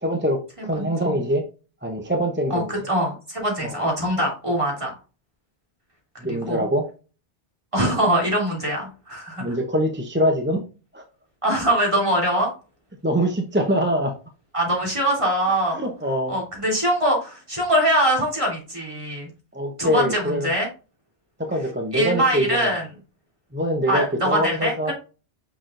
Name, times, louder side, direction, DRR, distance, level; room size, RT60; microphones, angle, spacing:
voice 1, 0.0-1.4 1.8-2.7 3.6-3.8 6.2-6.8 9.4-10.6 10.9-11.0 13.0-14.2 15.7-16.4 19.5-20.5 21.4-22.7 23.5-24.9, equal, 10° right, 3 dB, 0.6 m, -24 dB
voice 2, 0.7-1.2 2.5-5.0 6.2-6.7 7.7-9.6 11.4-12.5 14.5-15.8 16.3-19.3 19.8-20.7 21.9-22.8 23.9-24.9, right 1 dB, 25° right, -2 dB, 3.0 m, -23 dB
6.3 x 6.1 x 2.6 m, 0.34 s
omnidirectional pair, 1.2 m